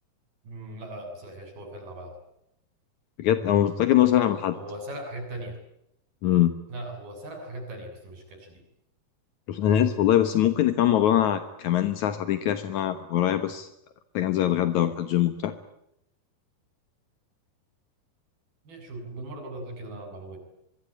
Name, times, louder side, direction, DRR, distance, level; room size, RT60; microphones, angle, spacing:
voice 1, 0.4-2.1 4.5-5.6 6.7-8.6 18.6-20.4, right 1 dB, 60° right, 5 dB, 9.1 m, -39 dB
voice 2, 3.2-4.6 6.2-6.6 9.5-13.7 14.1-15.5, left 11 dB, 70° left, 9 dB, 1.9 m, -23 dB
25.0 x 24.0 x 9.0 m, 0.80 s
omnidirectional pair, 5.0 m